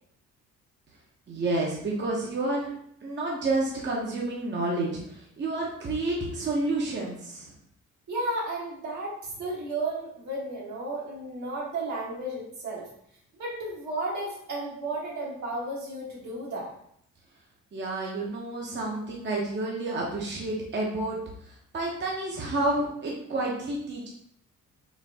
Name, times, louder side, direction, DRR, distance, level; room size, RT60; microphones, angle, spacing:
voice 1, 1.3-2.7 3.0-7.5 17.7-21.2 21.7-24.1, right 2 dB, 35° right, -3 dB, 0.8 m, -29 dB
voice 2, 8.1-12.9 13.4-16.7, right 2 dB, 70° right, -4 dB, 1.7 m, -33 dB
4.3 x 2.5 x 3.5 m, 0.70 s
cardioid pair, 90°, 30 cm